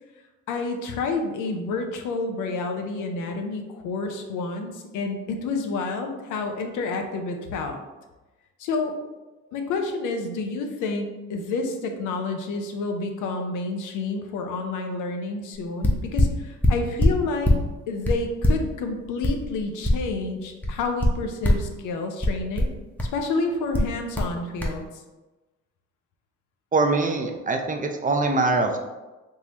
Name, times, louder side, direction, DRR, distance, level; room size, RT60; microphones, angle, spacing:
voice 1, 0.5-7.8 8.6-8.9 9.5-17.5 17.9-22.7 23.1-24.9, left 3 dB, 90° left, 4 dB, 0.6 m, -29 dB
sound 1, 15.5-15.6 15.8-17.7 18.0-20.3 20.6-21.7 22.2-23.2 23.7-24.3 24.6-24.8, left 1 dB, 5° left, 0.7 m, -22 dB
voice 2, 26.7-28.8, right 3 dB, 25° right, 4 dB, 0.5 m, -23 dB
3.7 x 2.9 x 2.8 m, 1.1 s
cardioid pair, 90°, 30 cm